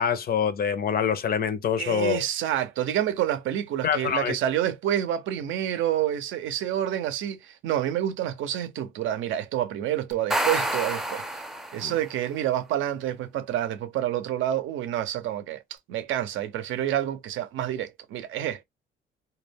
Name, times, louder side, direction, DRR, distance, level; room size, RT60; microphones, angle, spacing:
voice 1, 0.0-2.3 3.8-4.4 11.8-11.9, left 7 dB, 50° left, 0.5 m, -25 dB
voice 2, 1.8-11.2 11.7-15.6 15.9-18.6, right 11 dB, 80° right, 0.5 m, -28 dB
sound 1, 10.1-12.1, right 1 dB, ahead, 0.4 m, -28 dB
2.2 x 2.1 x 3.3 m
cardioid pair, 90°, 20 cm